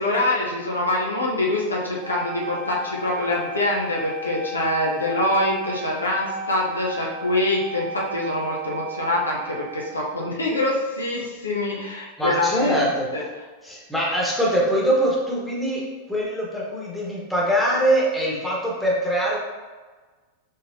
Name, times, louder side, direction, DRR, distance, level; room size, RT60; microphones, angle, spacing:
voice 1, 0.0-12.8 13.1-13.2, left 1 dB, 75° left, -3 dB, 0.8 m, -25 dB
Wind instrument woodwind instrument, 2.0-10.3, right 2 dB, 40° right, 1.3 m, -35 dB
voice 2, 12.2-13.1 13.6-15.8 16.1-19.4, right 1 dB, ahead, -5 dB, 1.2 m, -23 dB
5.1 x 3.7 x 2.7 m, 1.3 s
figure-of-eight pair, 90°, 0 cm